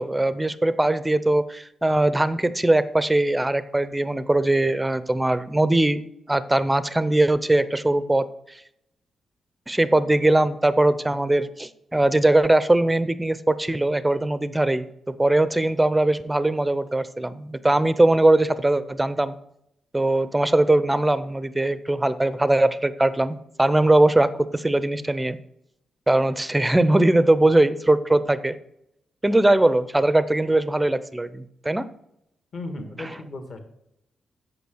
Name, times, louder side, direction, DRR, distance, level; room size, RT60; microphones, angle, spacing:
voice 1, 0.0-6.0 6.3-8.2 9.7-19.4 19.9-25.4 26.1-28.5 29.2-31.8 33.0-33.1, right 1 dB, 10° right, 14 dB, 0.5 m, -21 dB
voice 2, 32.5-33.6, left 2 dB, 45° left, 6 dB, 1.6 m, -35 dB
8.4 x 6.7 x 6.3 m, 0.79 s
wide cardioid pair, 140°, 0 cm